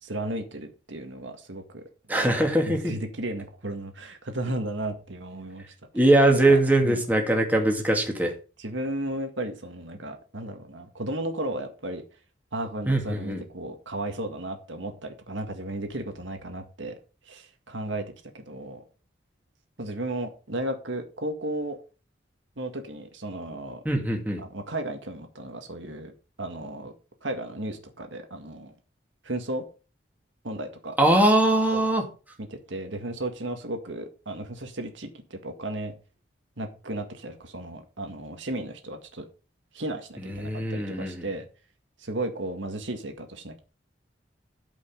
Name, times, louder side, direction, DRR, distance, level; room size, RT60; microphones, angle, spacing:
voice 1, 0.0-1.8 2.2-2.3 2.7-5.7 5.9-6.0 6.5-7.0 8.6-12.0 12.5-17.0 17.3-18.0 18.3-18.8 19.8-21.8 22.6-23.8 24.4-26.1 26.4-26.9 27.2-28.7 29.2-29.6 30.4-31.0 31.7-31.9 32.4-35.9 36.6-39.3 39.7-41.5 42.0-43.6, right 1 dB, 85° right, 5 dB, 1.9 m, -34 dB
voice 2, 2.1-2.9 5.9-8.3 12.9-13.4 23.9-24.4 31.0-32.0 40.3-41.2, right 1 dB, 10° right, 1 dB, 2.2 m, -21 dB
13.0 x 5.4 x 5.6 m, 0.35 s
head